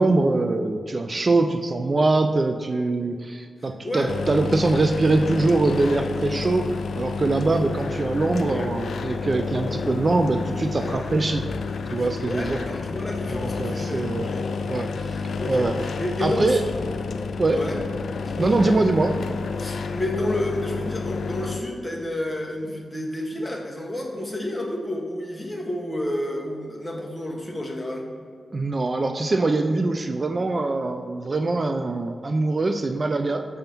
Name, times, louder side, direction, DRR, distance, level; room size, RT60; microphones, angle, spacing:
voice 1, 0.0-11.4 11.9-12.6 13.3-14.3 14.7-15.2 15.5-15.8 16.2-16.6 17.4-17.6 18.4-19.1 28.5-33.5, right 2 dB, 45° right, 8 dB, 0.4 m, -23 dB
voice 2, 3.8-4.1 8.5-8.7 12.2-14.5 15.4-16.6 17.5-17.8 18.2-18.7 19.6-28.1, left 1 dB, 20° left, 0 dB, 1.3 m, -30 dB
sound 1, 4.1-21.6, left 4 dB, 80° left, 0.3 m, -30 dB
6.7 x 3.5 x 5.8 m, 2.1 s
cardioid pair, 60°, 0 cm